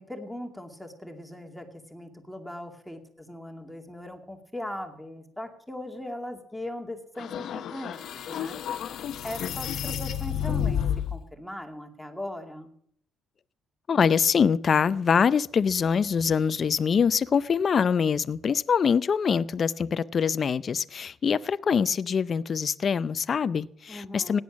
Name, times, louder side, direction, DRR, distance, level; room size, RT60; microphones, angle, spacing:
voice 1, 0.0-8.6 9.2-10.8 11.1-12.7 23.9-24.4, left 1 dB, 5° left, 2.3 m, -39 dB
sound 1, 7.2-11.2, left 9 dB, 65° left, 0.9 m, -31 dB
voice 2, 13.9-24.4, left 6 dB, 40° left, 0.5 m, -24 dB
17.0 x 10.5 x 7.2 m
cardioid pair, 110°, 0 cm